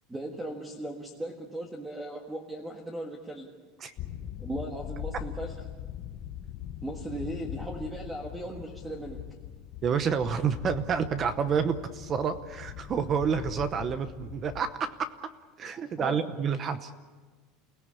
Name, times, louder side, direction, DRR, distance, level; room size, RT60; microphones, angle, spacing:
voice 1, 0.1-3.5 4.4-5.5 6.8-9.2 15.7-16.3, right 1 dB, 5° right, 2 dB, 1.5 m, -37 dB
sound 1, 4.0-14.6, left 10 dB, 35° left, 1.0 m, -41 dB
voice 2, 9.8-14.9 15.6-16.9, right 6 dB, 25° right, 11 dB, 0.8 m, -29 dB
29.5 x 17.5 x 8.6 m, 1.4 s
supercardioid pair, 175°, 0 cm